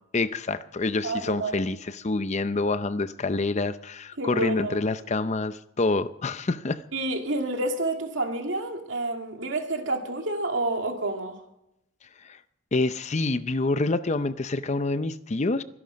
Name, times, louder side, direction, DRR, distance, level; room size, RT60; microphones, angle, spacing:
voice 1, 0.1-6.8 12.2-12.4 12.7-15.6, left 3 dB, 35° left, 0.6 m, -27 dB
voice 2, 1.0-1.5 4.2-4.8 6.9-11.4, right 2 dB, 65° right, 2.5 m, -29 dB
23.5 x 11.0 x 5.2 m
head